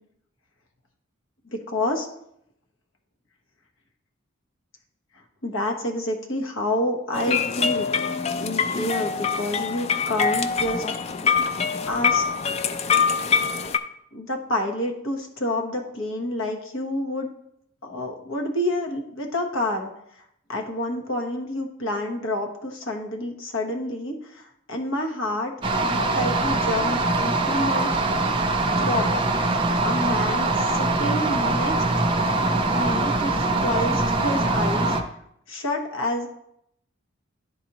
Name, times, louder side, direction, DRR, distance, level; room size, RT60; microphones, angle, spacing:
voice 1, 1.5-2.1 5.4-7.9 8.4-10.8 11.9-12.2 14.1-17.3 17.8-19.9 20.2-20.3 20.5-25.5 25.8-27.9 28.8-29.1 29.8-31.8 32.8-35.0 35.5-36.3, left 1 dB, 85° left, 2 dB, 1.1 m, -28 dB
sound 1, 7.1-13.8, left 6 dB, 30° left, 0.3 m, -24 dB
sound 2, 25.6-35.0, right 2 dB, 25° right, 0.5 m, -23 dB
11.0 x 4.1 x 2.9 m, 0.74 s
head